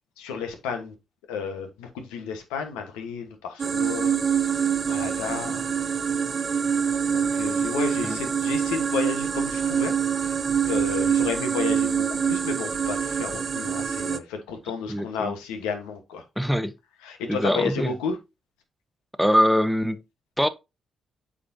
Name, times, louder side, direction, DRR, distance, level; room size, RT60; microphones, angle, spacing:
voice 1, 0.2-0.9 1.3-5.7 7.1-10.4 10.6-16.2 17.0-18.2, left 5 dB, 90° left, 1.3 m, -32 dB
sound 1, 3.6-14.2, right 7 dB, 50° right, 0.7 m, -25 dB
voice 2, 14.9-15.3 16.4-16.7 17.3-17.9 19.2-20.0 20.4-20.5, equal, ahead, 0.9 m, -23 dB
8.3 x 5.0 x 2.8 m
supercardioid pair, 50°, 0 cm